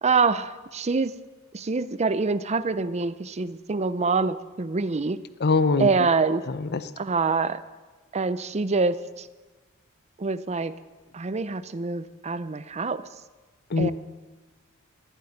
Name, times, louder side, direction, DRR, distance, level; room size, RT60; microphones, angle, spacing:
voice 1, 0.0-1.2 1.5-5.2 5.8-6.4 7.0-7.6 8.1-9.3 10.2-10.8 11.1-13.0 13.8-13.9, right 4 dB, 30° right, 14 dB, 0.6 m, -25 dB
voice 2, 5.4-5.9 6.5-6.8 13.7-13.9, left 4 dB, 50° left, 14 dB, 0.7 m, -22 dB
15.5 x 7.8 x 9.8 m, 1.3 s
head